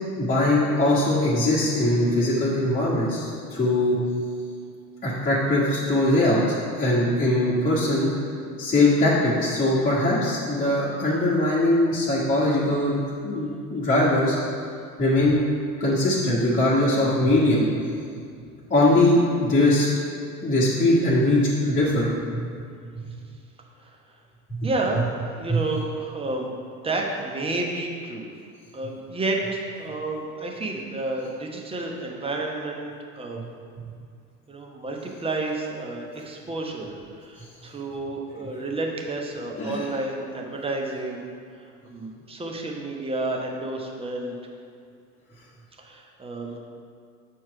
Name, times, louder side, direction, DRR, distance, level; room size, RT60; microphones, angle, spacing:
voice 1, 0.2-4.0 5.0-6.4 6.8-8.1 8.6-14.4 15.0-15.4 15.8-17.7 18.7-19.9 20.4-22.4 25.5-25.6 39.6-39.9, left 1 dB, 15° left, -9 dB, 1.5 m, -21 dB
voice 2, 24.6-26.5 26.8-28.3 28.7-33.4 34.5-41.3 41.8-44.3 45.8-46.6, right 2 dB, 15° right, 0 dB, 1.0 m, -30 dB
7.6 x 4.6 x 4.6 m, 2.3 s
figure-of-eight pair, 75°, 44 cm